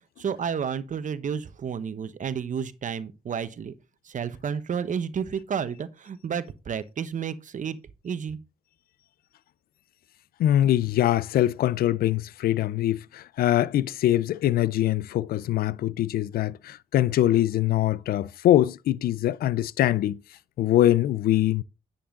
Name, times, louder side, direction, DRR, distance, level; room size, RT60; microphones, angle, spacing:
voice 1, 0.2-3.7 4.0-7.8 8.0-8.4, right 7 dB, 55° right, 1.2 m, -31 dB
voice 2, 10.4-20.2 20.6-21.6, left 13 dB, 75° left, 0.5 m, -23 dB
10.0 x 7.2 x 3.8 m
supercardioid pair, 60°, 16 cm